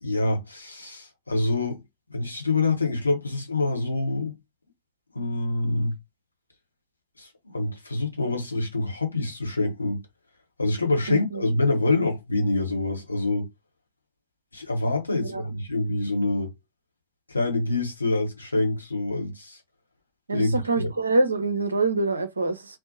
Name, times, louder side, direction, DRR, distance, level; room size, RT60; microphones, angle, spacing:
voice 1, 0.0-1.8 2.1-4.4 5.1-6.0 7.2-10.0 10.6-13.5 14.5-16.5 17.3-19.6 20.3-20.9, left 2 dB, 80° left, 0.7 m, -26 dB
voice 2, 11.1-11.4 15.2-15.4 20.3-22.8, right 3 dB, 75° right, 0.5 m, -25 dB
2.6 x 2.0 x 2.7 m
figure-of-eight pair, 90°, 0 cm